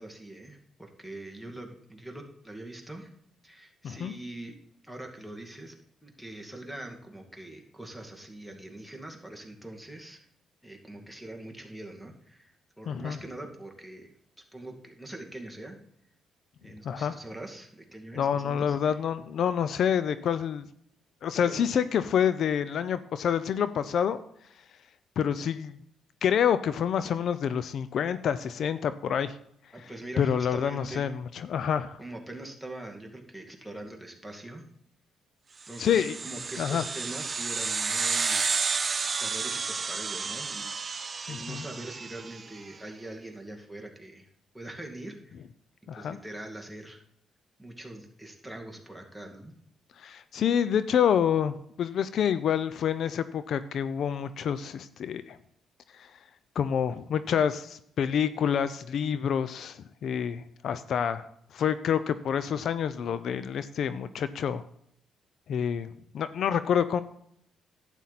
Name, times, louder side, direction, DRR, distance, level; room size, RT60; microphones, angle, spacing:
voice 1, 0.0-3.1 3.4-4.6 4.8-5.7 6.0-10.3 10.6-14.1 14.5-15.8 16.6-19.0 21.5-21.6 29.7-31.1 32.0-34.7 35.7-38.5 39.0-44.3 44.5-45.4 45.9-47.0 47.6-49.5, right 1 dB, ahead, 1 dB, 2.1 m, -43 dB
voice 2, 3.8-4.2 12.9-13.2 16.8-17.2 18.2-20.6 21.2-24.2 25.2-25.8 26.2-29.4 30.2-32.0 35.8-36.2 36.6-36.8 41.3-41.6 45.9-46.2 50.0-55.4 55.9-56.1 56.6-61.2 61.5-64.6 65.5-65.9 66.1-67.0, left 8 dB, 65° left, 13 dB, 0.5 m, -27 dB
sound 1, 35.7-42.5, right 5 dB, 35° right, 0.8 m, -31 dB
11.5 x 9.0 x 4.1 m, 0.70 s
cardioid pair, 90°, 0 cm